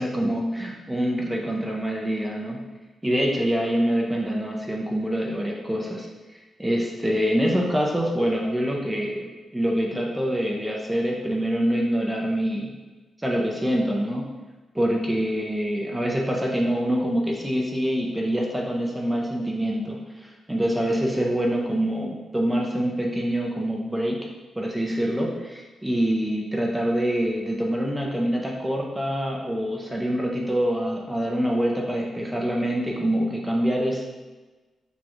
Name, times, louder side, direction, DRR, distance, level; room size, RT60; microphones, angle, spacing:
voice 1, 0.0-2.6 3.0-6.1 6.3-12.8 13.2-14.3 14.7-24.2 24.6-34.0, equal, 10° right, -1 dB, 0.5 m, -25 dB
6.2 x 2.3 x 3.0 m, 1.3 s
wide cardioid pair, 135°, 0 cm